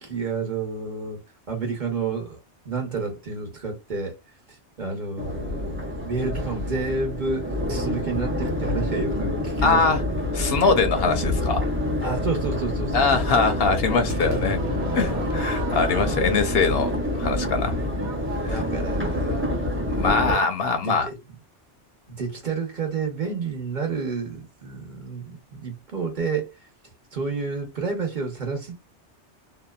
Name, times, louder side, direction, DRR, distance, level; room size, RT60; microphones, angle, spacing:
voice 1, 0.0-2.4 2.6-4.2 4.8-10.1 12.0-13.2 18.4-19.4 20.3-20.4 20.7-21.2 22.1-26.5 27.1-28.9, right 4 dB, 45° right, 0.9 m, -30 dB
Crowd, 5.2-20.3, left 1 dB, 15° right, 0.5 m, -27 dB
voice 2, 9.6-10.0 10.3-11.6 12.9-14.6 14.9-17.8 18.4-18.6 19.9-21.1, left 4 dB, 65° left, 0.7 m, -22 dB
Crowd / Fireworks, 14.1-19.3, right 3 dB, 85° right, 1.2 m, -37 dB
2.7 x 2.1 x 2.2 m
omnidirectional pair, 1.2 m